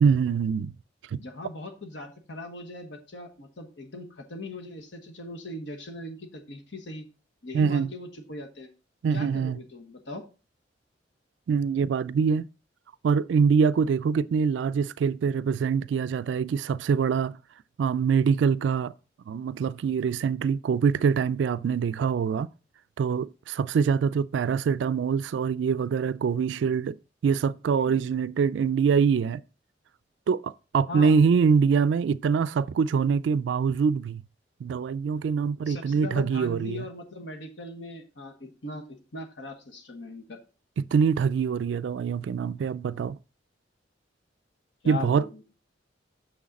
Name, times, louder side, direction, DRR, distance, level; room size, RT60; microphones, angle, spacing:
voice 1, 0.0-0.7 1.1-1.2 7.5-7.9 9.0-9.6 11.5-12.5 13.0-17.4 17.8-18.9 19.3-22.5 23.0-27.0 27.2-29.4 30.3-34.2 34.6-36.8 40.8-43.2 44.9-45.2, right 6 dB, 80° right, 0.3 m, -24 dB
voice 2, 1.2-7.1 7.4-8.7 9.1-10.2 27.8-28.0 30.9-31.2 35.7-40.4 44.8-45.4, left 2 dB, 80° left, 1.3 m, -39 dB
6.5 x 6.3 x 4.1 m
head